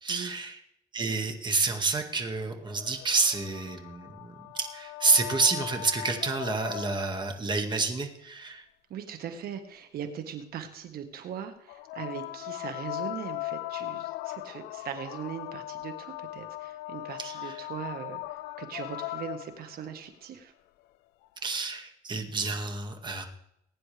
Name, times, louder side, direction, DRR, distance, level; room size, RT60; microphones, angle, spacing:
voice 1, 0.0-0.6 0.9-8.6 17.2-17.6 21.4-23.3, right 3 dB, 25° right, 4 dB, 2.0 m, -29 dB
sound 1, 2.6-7.3 11.7-19.9 21.2-21.3, left 18 dB, 85° left, 0.5 m, -39 dB
voice 2, 8.9-20.5, right 8 dB, 65° right, 7 dB, 1.6 m, -40 dB
21.0 x 9.7 x 3.4 m, 0.77 s
cardioid pair, 110°, 17 cm